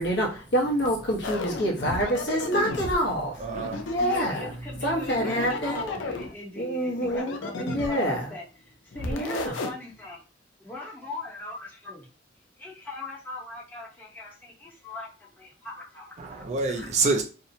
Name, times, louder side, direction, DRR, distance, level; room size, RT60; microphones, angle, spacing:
voice 1, 0.0-3.4 3.9-4.5 4.8-5.8 6.6-8.3 9.1-9.6, equal, 65° left, 0.8 m, -27 dB
sound 1, 1.2-3.0 3.5-4.6 5.1-6.3 7.0-8.3 8.9-9.7, left 3 dB, 85° left, 0.4 m, -33 dB
voice 2, 3.4-4.0 4.7-4.9 5.3-5.4 5.9-6.0 16.2-17.2, right 3 dB, 35° right, 0.4 m, -28 dB
voice 3, 4.0-10.2 10.6-12.1 12.6-16.4, left 2 dB, 10° left, 0.7 m, -40 dB
2.7 x 2.0 x 2.6 m
head